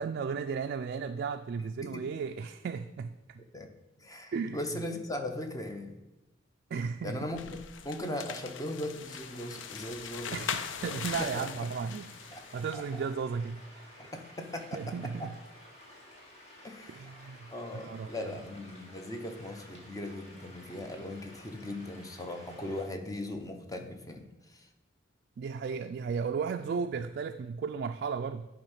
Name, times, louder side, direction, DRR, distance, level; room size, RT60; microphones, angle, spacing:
voice 1, 0.0-3.4 4.3-4.6 6.7-7.2 10.3-13.9 14.7-15.3 16.9-17.5 17.8-18.3 25.4-28.5, right 5 dB, 55° right, 6 dB, 0.3 m, -35 dB
voice 2, 1.6-2.1 3.5-3.7 4.0-6.0 7.0-7.6 7.8-10.5 10.8-11.5 12.3-12.4 12.7-13.0 14.1-14.9 15.2-15.3 16.6-17.2 17.5-24.7, left 1 dB, 20° left, 5 dB, 0.7 m, -39 dB
sound 1, 7.3-12.9, left 7 dB, 75° left, 0.5 m, -40 dB
sound 2, 9.0-22.8, left 1 dB, 35° left, 2.0 m, -53 dB
10.0 x 3.6 x 5.6 m, 1.0 s
head